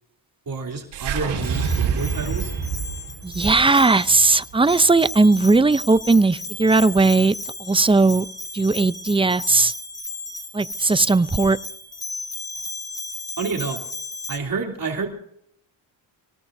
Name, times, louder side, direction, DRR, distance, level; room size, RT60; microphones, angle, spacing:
voice 1, 0.5-2.5 13.4-13.8 14.3-15.1, right 4 dB, 45° right, 3.1 m, -28 dB
sound 1, 0.9-5.2, right 6 dB, 80° right, 4.3 m, -27 dB
Bell, 1.4-14.4, left 2 dB, 10° left, 3.0 m, -35 dB
voice 2, 3.2-7.3 7.6-8.3 8.5-9.7 10.5-11.6, right 3 dB, 10° right, 0.5 m, -17 dB
24.0 x 18.5 x 2.7 m
cardioid pair, 90°, 48 cm